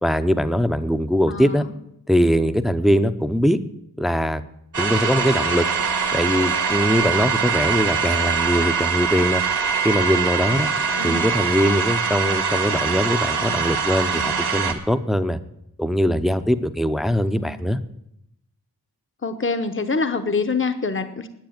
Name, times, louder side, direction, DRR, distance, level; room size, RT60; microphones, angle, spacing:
voice 1, 0.0-1.6 2.1-3.6 4.0-4.4 4.8-5.7 6.1-9.4 9.8-10.7 11.0-15.4 15.8-17.8, equal, ahead, 11 dB, 0.7 m, -21 dB
voice 2, 1.3-1.7 10.9-11.3 17.1-17.6 19.2-21.3, left 4 dB, 30° left, 9 dB, 1.0 m, -26 dB
sound 1, 4.7-14.7, right 6 dB, 80° right, 2.0 m, -23 dB
10.5 x 8.7 x 8.8 m, 0.78 s
wide cardioid pair, 85°, 38 cm